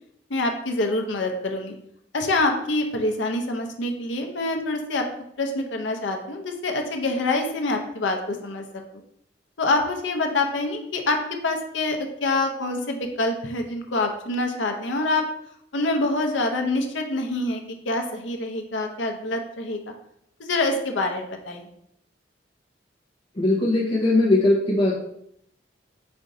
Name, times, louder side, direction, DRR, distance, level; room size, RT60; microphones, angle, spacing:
voice 1, 0.3-1.7 2.1-5.1 5.4-8.6 9.6-15.2 15.7-19.8 20.4-21.7, left 2 dB, 80° left, 4 dB, 0.7 m, -26 dB
voice 2, 23.4-24.9, left 2 dB, 30° left, -7 dB, 0.8 m, -20 dB
4.3 x 2.6 x 4.8 m, 0.72 s
head